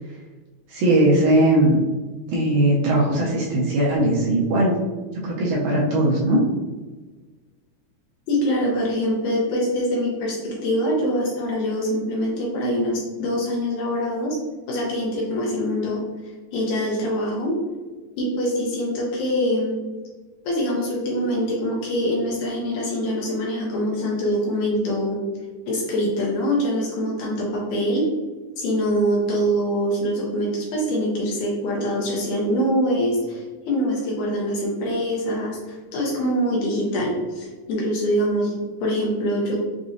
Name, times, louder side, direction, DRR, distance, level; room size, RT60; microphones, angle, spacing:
voice 1, 0.7-1.8 2.3-4.8 5.2-6.4, right 1 dB, 80° right, -4 dB, 2.0 m, -19 dB
voice 2, 8.3-14.4 14.7-16.0 16.5-17.6 18.2-19.7 20.5-25.2 25.7-28.1 28.6-39.6, equal, 75° left, -3 dB, 2.0 m, -24 dB
6.1 x 2.6 x 2.6 m, 1.3 s
omnidirectional pair, 4.3 m